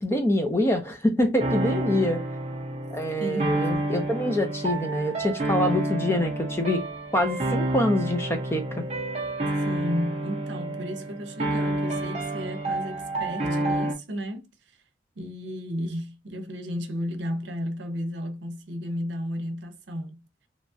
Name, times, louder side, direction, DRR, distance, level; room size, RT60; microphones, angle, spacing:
voice 1, 0.0-2.2 2.9-6.8 7.1-8.8, left 1 dB, 15° left, 0.5 m, -25 dB
sound 1, 1.4-13.9, right 1 dB, 35° right, 0.6 m, -29 dB
voice 2, 1.5-2.0 3.2-3.6 9.6-14.5 15.2-20.2, equal, 90° right, 0.6 m, -33 dB
2.9 x 2.3 x 2.6 m
head